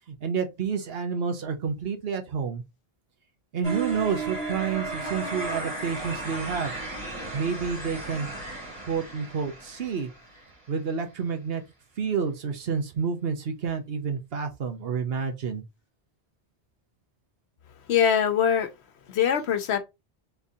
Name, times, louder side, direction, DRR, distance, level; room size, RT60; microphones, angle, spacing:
voice 1, 0.1-2.6 3.5-6.7 7.3-8.3 8.9-10.1 10.7-11.6 12.0-15.6, right 6 dB, 65° right, 1.1 m, -29 dB
sound 1, 3.6-10.6, right 3 dB, 30° right, 2.5 m, -35 dB
voice 2, 17.9-18.7 19.1-19.8, left 8 dB, 80° left, 1.0 m, -22 dB
3.7 x 3.5 x 2.7 m
omnidirectional pair, 1.1 m